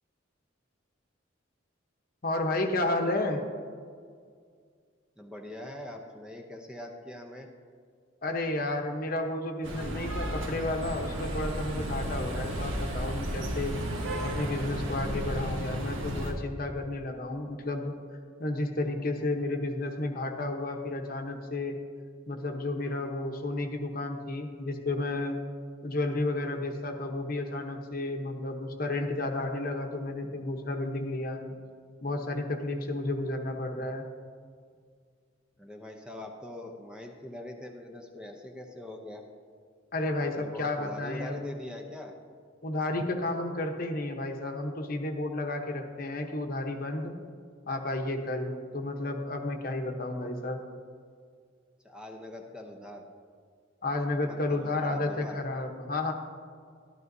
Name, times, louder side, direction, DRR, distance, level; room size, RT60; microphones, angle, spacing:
voice 1, 2.2-3.4 8.2-13.8 14.2-17.9 18.4-21.8 22.3-25.3 25.8-31.4 32.0-34.1 39.9-41.5 42.6-47.2 47.7-50.6 53.8-56.1, left 2 dB, 50° left, 4 dB, 0.9 m, -32 dB
voice 2, 5.2-7.5 35.6-39.3 40.4-42.1 48.7-48.9 51.8-53.1 54.2-55.4, left 1 dB, 5° right, 2 dB, 0.6 m, -43 dB
sound 1, 9.6-16.3, right 1 dB, 80° right, 1.4 m, -33 dB
12.0 x 12.0 x 2.7 m, 2.1 s
head